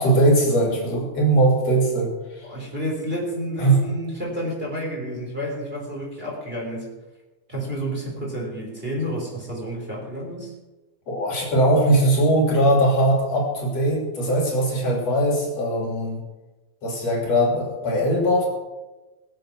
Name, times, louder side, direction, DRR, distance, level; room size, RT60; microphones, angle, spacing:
voice 1, 0.0-2.4 3.6-3.8 11.1-16.2 16.8-18.5, right 1 dB, 55° left, -1 dB, 3.9 m, -20 dB
voice 2, 2.4-6.9 7.5-10.5, equal, 15° right, -3 dB, 3.7 m, -30 dB
22.0 x 7.8 x 6.1 m, 1.1 s
omnidirectional pair, 3.6 m